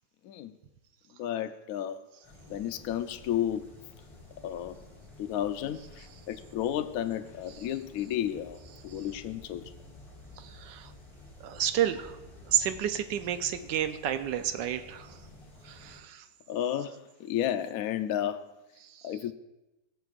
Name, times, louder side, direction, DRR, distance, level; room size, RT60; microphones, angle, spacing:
voice 1, 1.2-2.0 2.5-3.7 4.4-4.8 5.2-9.7 16.5-18.4 19.0-19.3, left 11 dB, 75° left, 8 dB, 0.8 m, -32 dB
sound 1, 2.2-16.0, left 2 dB, 15° left, 3.1 m, -52 dB
voice 2, 10.4-10.9 11.4-12.2 12.5-15.2 15.6-16.2 18.8-19.1, right 10 dB, 75° right, 9 dB, 1.3 m, -31 dB
20.5 x 6.9 x 2.5 m, 0.99 s
omnidirectional pair, 2.0 m